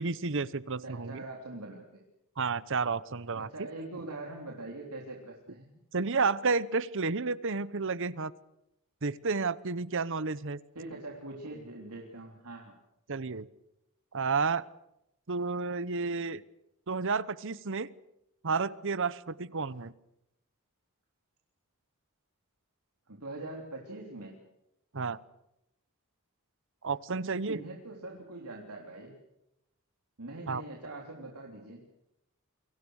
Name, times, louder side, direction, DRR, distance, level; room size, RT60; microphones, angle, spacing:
voice 1, 0.0-1.2 2.4-3.5 5.9-8.3 9.0-10.6 13.1-13.5 14.1-14.7 15.3-16.4 16.9-17.9 18.4-19.9 24.9-25.2 26.8-27.6 30.5-30.6, right 4 dB, 60° right, 18 dB, 0.9 m, -31 dB
voice 2, 0.8-2.0 3.3-5.7 10.8-12.8 23.1-24.4 27.5-29.2 30.2-31.8, right 2 dB, 85° right, 1 dB, 3.5 m, -43 dB
29.0 x 24.5 x 6.5 m, 0.85 s
head